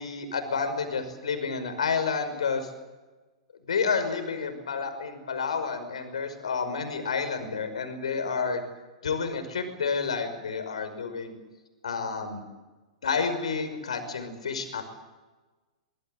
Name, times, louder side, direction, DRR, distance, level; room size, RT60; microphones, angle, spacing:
voice 1, 0.0-2.7 3.7-8.6 9.0-11.3 11.8-12.5 13.0-14.8, left 5 dB, 75° left, 8 dB, 5.5 m, -30 dB
24.0 x 22.0 x 7.9 m, 1.2 s
hypercardioid pair, 105°, 3 cm